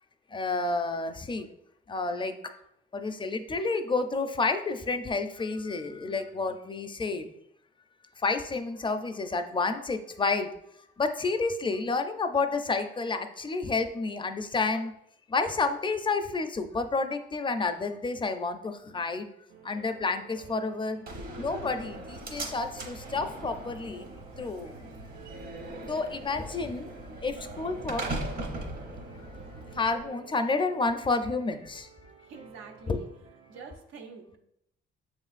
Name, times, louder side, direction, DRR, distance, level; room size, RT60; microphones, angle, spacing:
voice 1, 0.3-1.5 1.9-2.6 2.9-7.3 8.2-10.5 11.0-14.9 15.3-19.3 19.6-21.0 21.4-24.1 24.4-24.7 25.8-26.9 27.2-28.0 28.6-28.7 29.7-31.9 32.9-33.0, left 3 dB, 25° left, 7 dB, 0.4 m, -30 dB
sound 1, 19.5-33.8, right 7 dB, 65° right, 1.3 m, -53 dB
Slam, 21.1-30.1, right 2 dB, 50° right, 1.0 m, -39 dB
voice 2, 32.3-33.1 33.5-34.4, right 5 dB, 90° right, 3 dB, 0.8 m, -46 dB
6.9 x 3.1 x 2.4 m, 0.77 s
cardioid pair, 90°, 20 cm